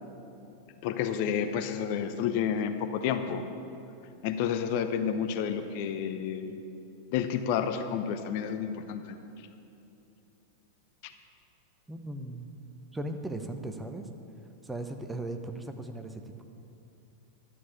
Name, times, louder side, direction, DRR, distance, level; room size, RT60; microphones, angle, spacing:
voice 1, 0.8-3.4 4.2-6.6 7.1-9.2 11.0-11.1, left 8 dB, 45° left, 8 dB, 0.7 m, -30 dB
voice 2, 11.9-12.5 12.9-14.1 14.6-16.4, right 2 dB, 10° right, 5 dB, 0.8 m, -37 dB
11.5 x 7.2 x 8.3 m, 2.8 s
figure-of-eight pair, 90°, 0 cm